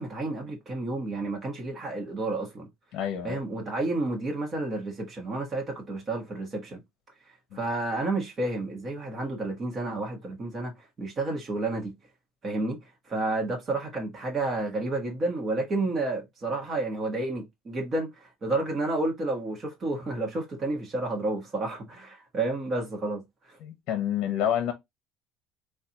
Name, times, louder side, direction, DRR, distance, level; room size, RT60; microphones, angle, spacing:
voice 1, 0.0-2.7 3.2-6.8 7.5-10.7 11.0-11.9 12.4-12.8 13.1-23.6, right 2 dB, 25° right, 1.1 m, -30 dB
voice 2, 2.9-3.4 7.5-7.6 23.6-24.7, left 10 dB, 55° left, 0.9 m, -28 dB
4.0 x 2.3 x 2.8 m
cardioid pair, 150°, 0 cm